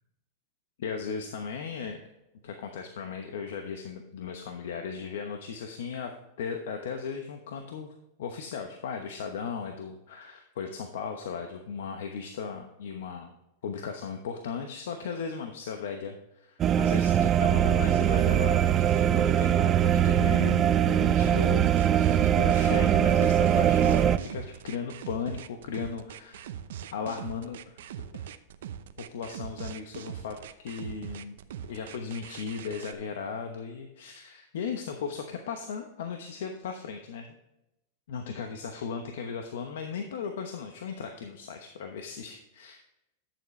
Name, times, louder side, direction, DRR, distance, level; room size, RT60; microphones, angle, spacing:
voice 1, 0.8-2.0 2.4-6.1 6.4-7.9 8.2-13.3 13.6-26.5 26.9-27.8 29.1-30.4 30.6-31.4 31.7-37.3 38.1-42.9, left 6 dB, 80° left, 5 dB, 1.0 m, -36 dB
sound 1, 16.6-24.2, right 10 dB, 30° right, 0.4 m, -22 dB
sound 2, 21.4-32.9, right 10 dB, 75° right, 0.7 m, -41 dB
11.0 x 7.2 x 3.3 m, 0.89 s
hypercardioid pair, 125°, 0 cm